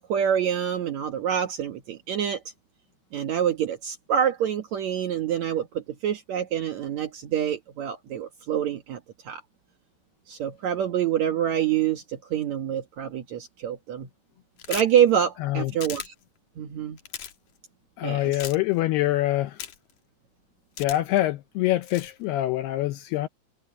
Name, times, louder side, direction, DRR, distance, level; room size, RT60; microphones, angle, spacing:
voice 1, 0.0-2.4 3.1-9.4 10.3-14.1 14.7-16.1 16.6-17.0 18.0-18.3, right 9 dB, 70° right, 1.7 m, -26 dB
sound 1, 14.6-15.0 15.8-16.1 17.0-17.3 18.3-18.6 19.6-19.9 20.8-21.2 21.8-22.1, left 10 dB, 60° left, 2.1 m, -36 dB
voice 2, 15.4-15.7 18.0-19.6 20.8-23.3, left 15 dB, 80° left, 2.3 m, -25 dB
omnidirectional pair, 5.3 m